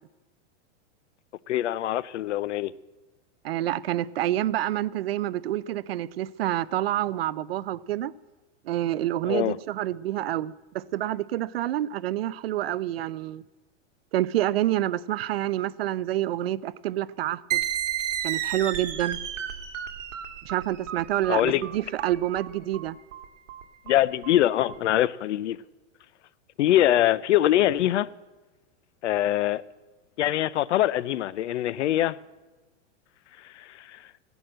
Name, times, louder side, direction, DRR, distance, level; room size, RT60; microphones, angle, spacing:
voice 1, 1.5-2.7 9.3-9.6 21.3-21.6 23.9-25.6 26.6-28.1 29.0-29.6 30.2-32.2 33.4-34.0, left 13 dB, 70° left, 0.7 m, -23 dB
voice 2, 3.4-8.1 8.7-13.4 14.1-17.6 18.2-19.2 20.4-23.0, right 13 dB, 55° right, 0.5 m, -28 dB
sound 1, 17.5-24.7, right 10 dB, 90° right, 2.0 m, -32 dB
15.5 x 11.0 x 7.7 m
supercardioid pair, 175°, 37 cm